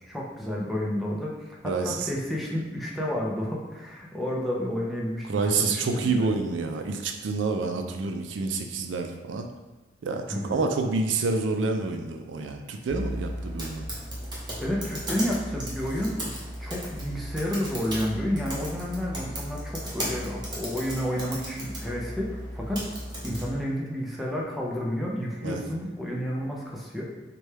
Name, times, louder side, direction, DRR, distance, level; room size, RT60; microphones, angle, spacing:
voice 1, 0.0-6.3 10.3-10.6 14.6-16.3 16.6-22.9 23.2-27.1, equal, ahead, -4 dB, 0.5 m, -31 dB
voice 2, 1.6-2.1 5.3-9.5 10.0-13.9 25.4-25.6, right 4 dB, 75° right, 5 dB, 0.4 m, -28 dB
sound 1, 12.9-23.5, equal, 25° right, 0.9 m, -35 dB
4.1 x 2.2 x 3.2 m, 1.2 s
head